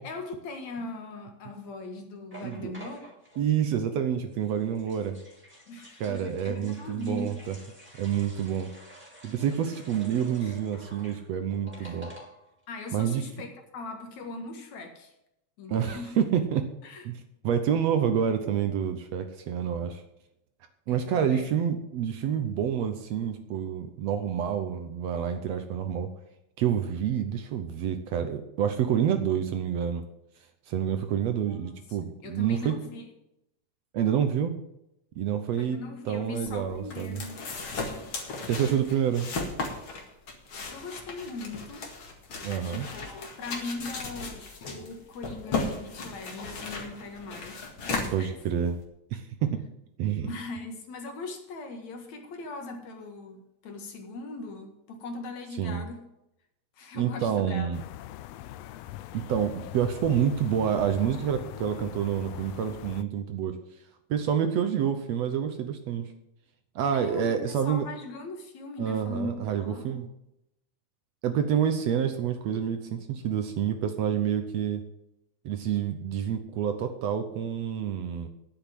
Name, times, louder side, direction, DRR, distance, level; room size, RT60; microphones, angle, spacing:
voice 1, 0.0-3.1 5.7-7.4 10.4-10.6 11.8-12.0 12.7-15.1 15.6-16.2 16.8-17.0 20.9-21.5 31.5-33.1 35.6-37.4 40.7-41.9 42.6-48.4 50.2-56.0 56.8-57.7 66.9-70.0, left 2 dB, 65° left, 4 dB, 3.0 m, -40 dB
sound 1, 2.3-3.5 4.3-12.6 12.9-13.0 13.2-13.5, right 1 dB, 5° right, 3.3 m, -50 dB
voice 2, 2.4-2.7 3.4-5.2 6.0-7.5 8.0-8.7 9.2-12.1 12.9-13.2 15.7-16.7 17.1-20.0 20.9-26.1 26.6-30.0 30.7-32.7 33.9-34.5 35.2-35.8 36.1-37.2 38.5-39.3 42.4-42.9 48.1-48.8 49.1-49.5 50.0-50.3 55.6-55.8 56.9-57.8 59.1-63.6 64.1-66.1 66.8-67.9 68.8-70.1 71.2-74.8 75.5-78.3, right 8 dB, 70° right, 7 dB, 1.8 m, -28 dB
sound 2, 36.3-48.8, left 3 dB, 45° left, 2.4 m, -36 dB
sound 3, 57.7-63.0, left 14 dB, 85° left, 1.4 m, -41 dB
10.5 x 8.1 x 7.5 m, 0.84 s
omnidirectional pair, 3.5 m